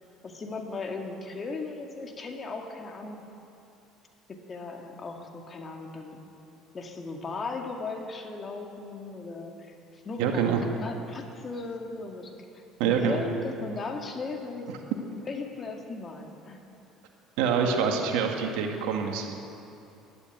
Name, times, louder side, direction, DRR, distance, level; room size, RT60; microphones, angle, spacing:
voice 1, 0.2-3.2 4.3-6.2 6.7-14.7 15.2-16.6, left 3 dB, 35° left, 2 dB, 2.1 m, -37 dB
voice 2, 10.2-10.6 12.8-13.2 17.4-19.3, right 6 dB, 80° right, 3 dB, 1.9 m, -26 dB
12.0 x 12.0 x 9.3 m, 2.8 s
supercardioid pair, 95°, 0 cm